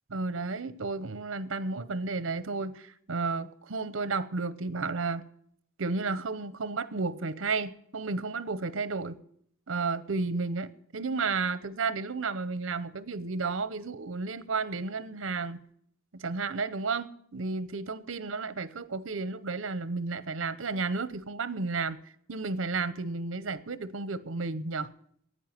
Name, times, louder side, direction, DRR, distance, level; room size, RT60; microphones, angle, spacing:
voice 1, 0.1-5.3 5.8-9.2 9.7-15.6 16.1-22.0 22.3-24.9, right 4 dB, 70° right, 0.8 m, -32 dB
11.0 x 9.3 x 9.1 m
head